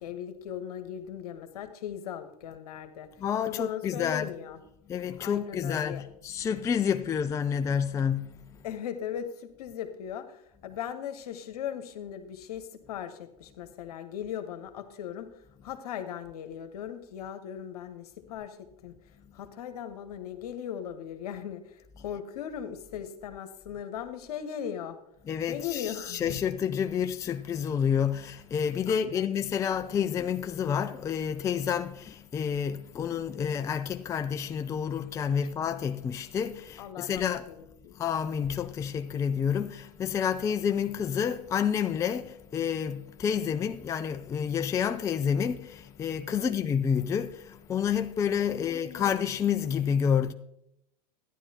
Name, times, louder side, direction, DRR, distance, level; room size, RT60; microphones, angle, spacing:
voice 1, 0.0-3.1 3.4-4.6 5.2-6.0 8.6-25.0 25.5-26.4 28.9-29.3 36.8-37.9 46.3-46.6 48.5-49.2, left 9 dB, 70° left, 1.1 m, -38 dB
voice 2, 3.2-4.3 4.9-8.4 22.0-22.1 25.2-37.4 38.0-50.3, left 7 dB, 15° left, 0.3 m, -29 dB
12.0 x 10.0 x 2.8 m
hypercardioid pair, 95°, 20 cm